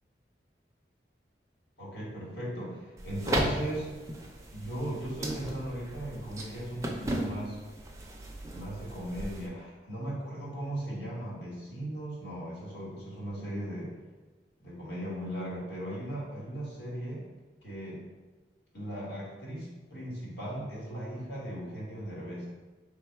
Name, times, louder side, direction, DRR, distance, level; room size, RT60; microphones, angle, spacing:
voice 1, 1.8-3.9 4.5-7.6 8.5-13.9 14.6-17.2 17.6-18.0 18.7-22.5, right 1 dB, 75° left, -5 dB, 1.2 m, -37 dB
sound 1, 3.0-9.5, right 1 dB, 15° right, 0.4 m, -36 dB
3.4 x 2.3 x 4.4 m, 1.3 s
head